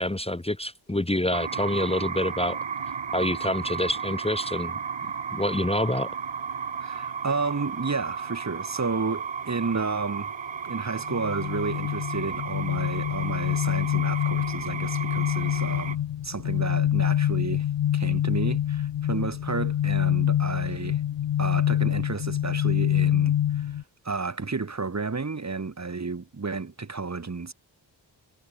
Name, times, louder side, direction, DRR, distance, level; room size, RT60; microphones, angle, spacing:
voice 1, 0.0-2.6 3.1-4.7 5.3-6.1, left 1 dB, 15° left, 1.3 m, -27 dB
sound 1, 1.3-16.0, right 6 dB, 80° right, 2.9 m, -34 dB
voice 2, 6.8-10.3 10.6-17.7 17.9-21.0 21.4-23.8 24.0-27.5, right 4 dB, 35° right, 2.0 m, -31 dB
sound 2, 11.0-23.8, left 11 dB, 75° left, 0.6 m, -26 dB
wide cardioid pair, 115°, 44 cm